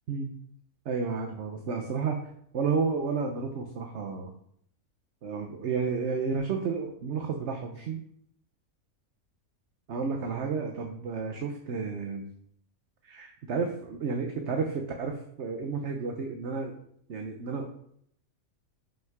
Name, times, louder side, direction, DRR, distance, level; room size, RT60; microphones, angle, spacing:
voice 1, 0.8-2.2 2.5-4.3 5.2-8.0 9.9-12.3 13.0-16.8 17.1-17.7, right 5 dB, 55° right, 3 dB, 1.0 m, -31 dB
5.8 x 5.7 x 5.9 m, 0.68 s
omnidirectional pair, 1.5 m